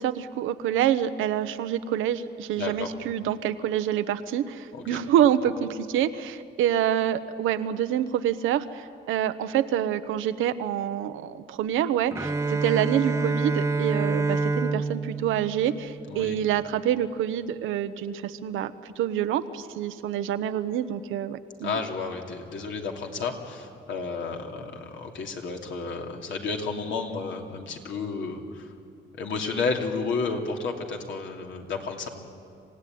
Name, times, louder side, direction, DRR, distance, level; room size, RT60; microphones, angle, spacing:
voice 1, 0.0-18.7 19.0-21.8, right 10 dB, 90° right, 11 dB, 1.0 m, -27 dB
voice 2, 2.6-2.9 4.7-5.0 16.1-16.4 21.6-28.7 29.2-32.1, left 4 dB, 70° left, 2 dB, 2.9 m, -32 dB
Bowed string instrument, 12.1-16.2, right 3 dB, 15° right, 1.0 m, -27 dB
27.0 x 16.5 x 9.4 m, 2.5 s
cardioid pair, 90°, 20 cm